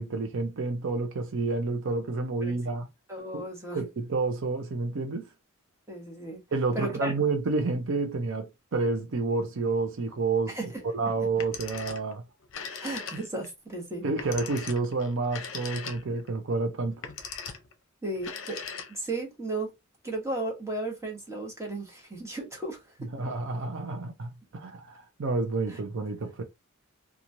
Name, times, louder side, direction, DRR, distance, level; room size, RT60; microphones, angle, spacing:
voice 1, 0.0-2.9 3.3-3.4 3.7-5.3 6.5-10.6 10.9-12.2 14.0-17.0 23.1-26.4, right 3 dB, 60° right, 0.5 m, -29 dB
voice 2, 3.1-3.8 5.9-6.4 6.7-7.1 10.5-10.8 12.8-14.0 18.0-18.6 18.9-19.7 20.0-23.1 25.7-25.8, right 2 dB, 15° right, 1.0 m, -35 dB
Telephone, 11.3-12.1 12.4-13.5 14.2-16.3 16.9-17.7 18.2-19.2, left 6 dB, 65° left, 0.6 m, -39 dB
2.9 x 2.3 x 2.6 m
head